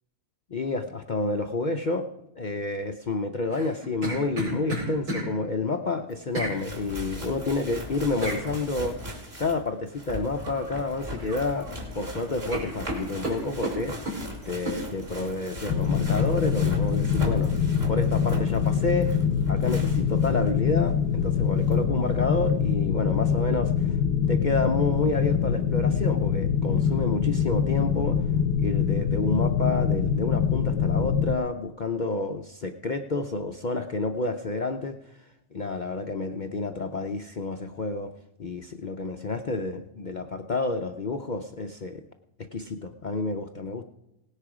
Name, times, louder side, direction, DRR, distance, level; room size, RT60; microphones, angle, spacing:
voice 1, 0.5-2.1 2.4-9.1 9.4-11.7 11.9-14.2 14.5-17.5 17.9-19.2 19.5-20.9 21.2-24.0 24.3-28.2 28.6-35.0 35.5-38.1 38.4-42.0 42.5-43.8, left 3 dB, 55° left, 5 dB, 0.5 m, -29 dB
sound 1, 3.5-5.3 6.3-6.6 8.2-8.4 10.4-10.7 11.1-11.7 12.0-12.2 12.5-14.2 14.7-14.8, right 1 dB, 80° right, 5.8 m, -32 dB
sound 2, 6.1-6.2 6.4-20.5 20.9-21.0 21.7-21.8, equal, 40° right, 3.0 m, -38 dB
sound 3, 15.7-31.4, left 7 dB, 90° left, 1.3 m, -24 dB
18.0 x 9.9 x 4.9 m, 0.93 s
omnidirectional pair, 1.6 m